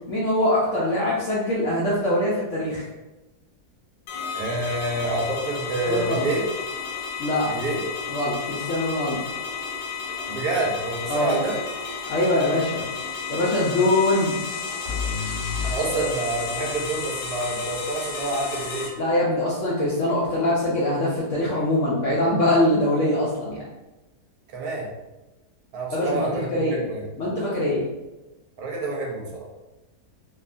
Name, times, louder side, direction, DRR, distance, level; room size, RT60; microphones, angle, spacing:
voice 1, 0.1-2.8 5.9-6.3 7.2-7.5 8.1-9.2 11.1-11.4 12.1-12.8 13.3-14.4 19.0-23.6 25.9-26.8 27.2-27.9, left 1 dB, 70° left, -6 dB, 0.7 m, -23 dB
sound 1, 4.1-18.9, left 5 dB, 85° left, 1.2 m, -32 dB
voice 2, 4.3-6.4 7.4-7.8 10.3-11.6 15.6-18.9 24.5-24.9 25.7-27.0 28.6-29.4, right 2 dB, 75° right, -1 dB, 1.0 m, -27 dB
sound 2, 14.8-18.5, left 5 dB, 25° right, 0.7 m, -34 dB
2.7 x 2.2 x 2.4 m, 1.0 s
omnidirectional pair, 1.8 m